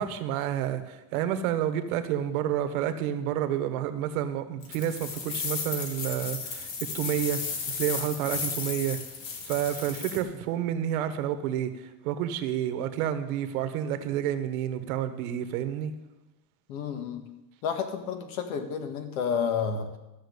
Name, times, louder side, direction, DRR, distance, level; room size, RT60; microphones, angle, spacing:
voice 1, 0.0-7.4 7.7-9.0 9.4-15.9, right 10 dB, 70° right, 9 dB, 1.3 m, -29 dB
sound 1, 4.6-10.2, left 5 dB, 50° left, 2.1 m, -34 dB
voice 2, 16.7-17.2 17.6-20.0, left 7 dB, 70° left, 7 dB, 1.9 m, -30 dB
13.5 x 6.3 x 8.1 m, 1.0 s
supercardioid pair, 160°, 44 cm